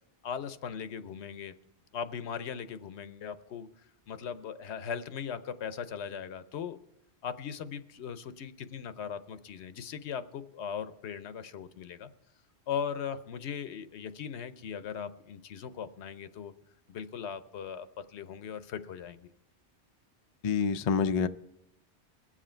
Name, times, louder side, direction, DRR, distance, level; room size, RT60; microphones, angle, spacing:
voice 1, 0.2-1.5 1.9-3.7 4.1-6.8 7.2-12.1 12.7-16.5 16.9-19.3, left 7 dB, 80° left, 12 dB, 1.0 m, -39 dB
voice 2, 20.4-21.3, left 6 dB, 55° left, 10 dB, 0.4 m, -27 dB
21.5 x 7.5 x 4.4 m, 0.84 s
omnidirectional pair, 1.1 m